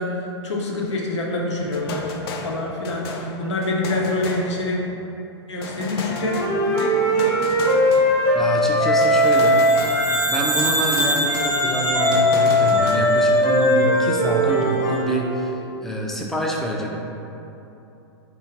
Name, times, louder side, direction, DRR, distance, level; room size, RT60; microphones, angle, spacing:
voice 1, 0.0-2.1 2.4-4.8 5.5-6.4 6.8-7.3, left 2 dB, 85° left, -2 dB, 0.8 m, -26 dB
sound 1, 1.7-5.0 5.6-8.5 9.0-10.3 10.6-13.0, left 3 dB, 60° left, 0.5 m, -35 dB
Wind instrument woodwind instrument, 6.1-10.2 11.3-15.2, left 1 dB, 20° left, 0.9 m, -19 dB
voice 2, 8.3-9.6 10.3-17.0, right 1 dB, ahead, -2 dB, 0.4 m, -26 dB
sound 2, 9.2-13.7, right 2 dB, 75° right, 0.6 m, -26 dB
3.6 x 2.7 x 4.4 m, 2.9 s
hypercardioid pair, 135°, 14 cm